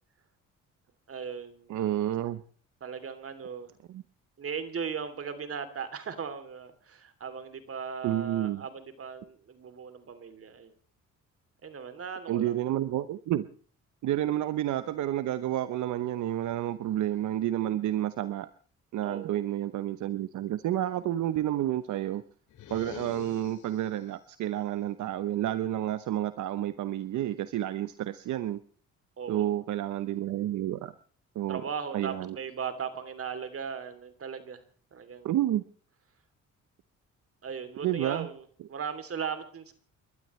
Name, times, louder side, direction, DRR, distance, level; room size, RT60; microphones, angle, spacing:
voice 1, 1.1-1.7 2.8-3.7 4.4-10.7 11.6-12.6 19.0-19.4 29.2-29.5 31.5-34.6 34.9-35.4 37.4-39.7, right 6 dB, 50° right, 11 dB, 3.1 m, -38 dB
voice 2, 1.7-2.4 3.9-4.0 8.0-8.6 12.3-13.4 14.0-18.5 18.9-22.2 22.7-28.6 29.3-30.9 31.3-31.6 31.9-32.4 35.2-35.6 37.8-38.3, right 12 dB, 75° right, 13 dB, 0.9 m, -30 dB
sound 1, 22.5-24.1, left 9 dB, 80° left, 2.7 m, -45 dB
30.0 x 12.5 x 3.2 m, 0.43 s
cardioid pair, 90°, 30 cm